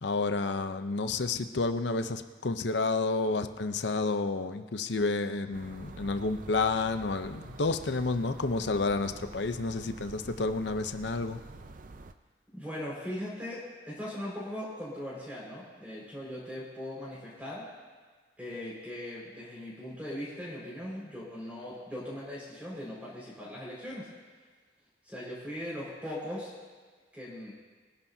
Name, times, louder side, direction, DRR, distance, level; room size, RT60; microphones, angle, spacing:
voice 1, 0.0-11.4, left 3 dB, 70° left, 9 dB, 0.7 m, -30 dB
sound 1, 5.5-12.1, right 2 dB, 45° right, 0.6 m, -47 dB
voice 2, 12.5-17.6 18.4-24.1 25.1-26.5 27.1-27.5, left 1 dB, 5° right, -7 dB, 5.0 m, -39 dB
24.5 x 11.5 x 2.8 m, 1.5 s
head